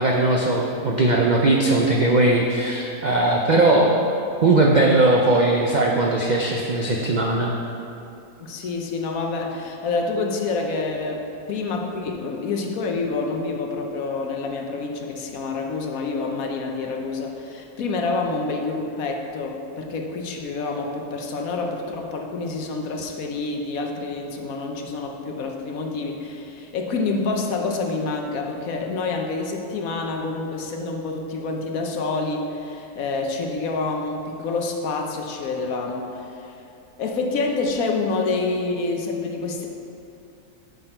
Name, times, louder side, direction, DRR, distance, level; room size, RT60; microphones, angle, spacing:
voice 1, 0.0-4.0 4.4-7.5, right 2 dB, 60° right, -1 dB, 0.4 m, -19 dB
voice 2, 8.4-36.6 37.0-39.7, left 3 dB, 70° left, 2 dB, 1.2 m, -27 dB
8.8 x 5.9 x 4.4 m, 2.7 s
omnidirectional pair, 1.6 m